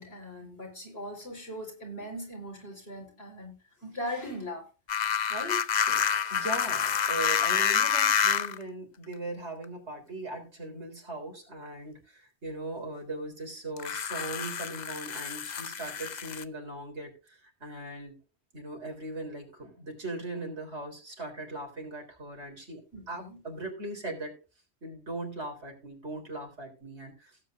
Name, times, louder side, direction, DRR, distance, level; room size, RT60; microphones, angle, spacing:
voice 1, 0.0-4.7 5.3-5.6 22.9-23.4, left 1 dB, 70° left, 4.9 m, -39 dB
sound 1, 4.9-8.6 9.6-9.7 13.8-16.4, left 7 dB, 45° left, 0.7 m, -28 dB
voice 2, 5.9-18.2 18.5-24.4 24.8-27.3, right 2 dB, 85° right, 4.1 m, -39 dB
17.0 x 8.9 x 2.6 m
omnidirectional pair, 1.1 m